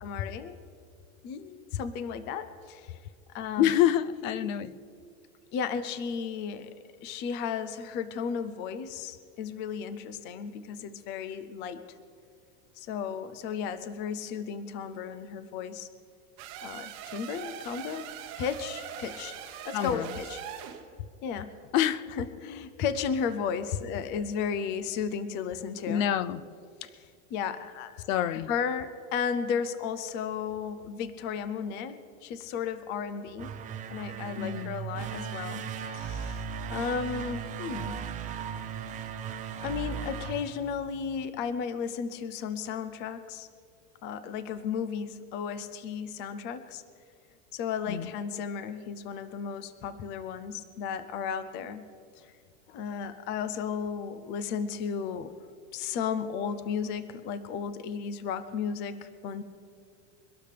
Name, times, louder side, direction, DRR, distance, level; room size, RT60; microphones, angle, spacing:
voice 1, 0.0-0.6 1.2-3.0 3.3-3.7 5.5-6.7 7.0-11.8 12.8-15.9 16.6-20.4 21.2-21.5 22.2-26.0 26.8-26.9 27.3-28.0 28.5-33.5 33.9-35.7 35.9-36.4 36.7-38.0 39.6-43.5 44.0-46.8 47.5-51.9 52.7-55.3 55.7-59.4, left 6 dB, 30° left, 0.5 m, -34 dB
voice 2, 3.6-4.7 19.7-20.1 21.7-22.2 25.9-26.4 28.1-28.5 34.4-34.7 47.9-48.1, left 11 dB, 75° left, 0.7 m, -27 dB
sound 1, 16.4-20.8, right 9 dB, 40° right, 1.2 m, -41 dB
sound 2, 33.3-41.2, right 7 dB, 20° right, 0.5 m, -37 dB
23.0 x 12.0 x 3.4 m
supercardioid pair, 160°, 39 cm